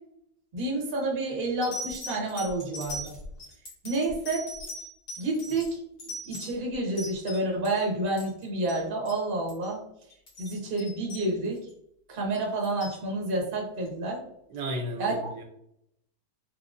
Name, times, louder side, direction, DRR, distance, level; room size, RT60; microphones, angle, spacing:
voice 1, 0.5-3.2 3.8-4.5 5.2-5.8 6.3-9.8 10.4-11.6 12.1-14.2 15.0-15.3, right 2 dB, 45° right, -1 dB, 0.7 m, -29 dB
sound 1, 0.8-1.1 1.6-7.8 8.1-8.4 8.7-8.8 9.1-9.2 9.5-9.7 10.1-11.7 12.3-13.0 13.9-14.0, equal, 55° left, 1.8 m, -40 dB
voice 2, 14.5-15.4, right 1 dB, 75° right, 3 dB, 1.1 m, -34 dB
4.6 x 2.1 x 2.4 m, 0.73 s
omnidirectional pair, 2.1 m